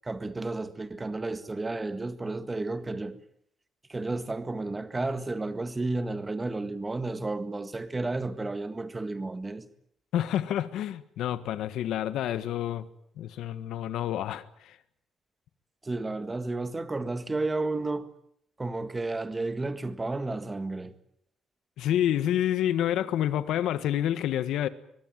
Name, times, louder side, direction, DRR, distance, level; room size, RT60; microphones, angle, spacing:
voice 1, 0.0-3.2 3.9-9.6 15.8-18.1 18.6-20.9, right 2 dB, 15° right, 1.7 m, -32 dB
voice 2, 10.1-12.9 13.2-14.7 21.8-24.7, left 11 dB, 80° left, 1.6 m, -28 dB
23.5 x 22.5 x 9.2 m
cardioid pair, 140°, 0 cm